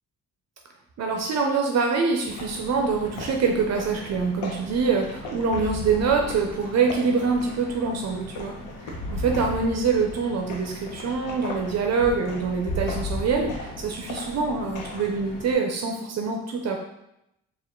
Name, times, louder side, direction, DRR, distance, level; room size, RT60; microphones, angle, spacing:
voice 1, 1.0-8.5 9.1-16.8, right 5 dB, 60° right, 2 dB, 0.6 m, -25 dB
sound 1, 2.2-15.5, left 1 dB, 90° left, 0.9 m, -36 dB
4.3 x 2.5 x 3.7 m, 0.83 s
cardioid pair, 90°, 30 cm